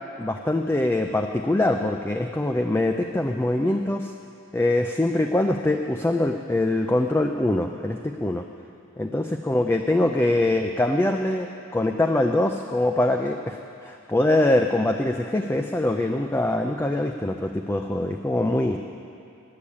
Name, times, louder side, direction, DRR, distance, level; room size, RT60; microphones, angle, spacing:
voice 1, 0.2-4.1 4.5-8.4 9.0-11.5 11.7-18.8, left 1 dB, 10° left, 4 dB, 0.3 m, -23 dB
10.0 x 8.6 x 9.6 m, 2.7 s
head